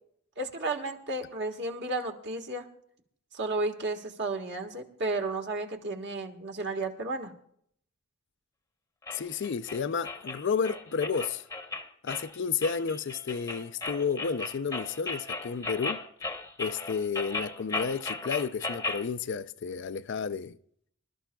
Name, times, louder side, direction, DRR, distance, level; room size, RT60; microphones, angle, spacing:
voice 1, 0.4-2.6 3.3-7.3, right 2 dB, 50° right, 1.5 m, -33 dB
voice 2, 9.1-11.4 12.0-16.0 16.6-20.6, left 5 dB, 55° left, 0.4 m, -31 dB
sound 1, 9.1-19.1, left 3 dB, 15° left, 0.9 m, -36 dB
26.5 x 12.5 x 2.3 m
head